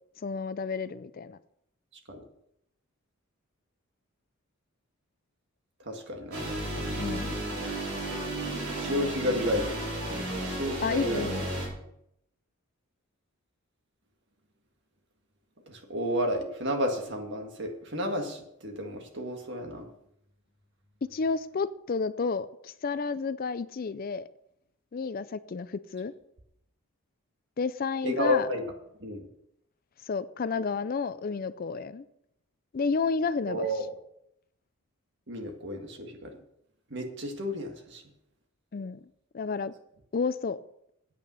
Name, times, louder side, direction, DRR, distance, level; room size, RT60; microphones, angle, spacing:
voice 1, 0.2-1.4 7.0-7.4 10.8-11.5 21.0-24.3 24.9-26.1 27.6-28.5 30.1-32.1 32.7-33.7 38.7-39.0 39.3-39.7 40.1-40.6, left 4 dB, 40° left, 15 dB, 0.4 m, -31 dB
voice 2, 5.8-6.5 8.8-9.8 10.4-11.3 15.7-19.9 28.0-28.6 29.0-29.2 33.5-33.9 35.3-36.4 36.9-38.0, equal, 50° right, 3 dB, 1.9 m, -31 dB
sound 1, 6.3-11.7, right 1 dB, 80° right, 4.8 m, -33 dB
9.1 x 8.6 x 5.6 m, 0.75 s
head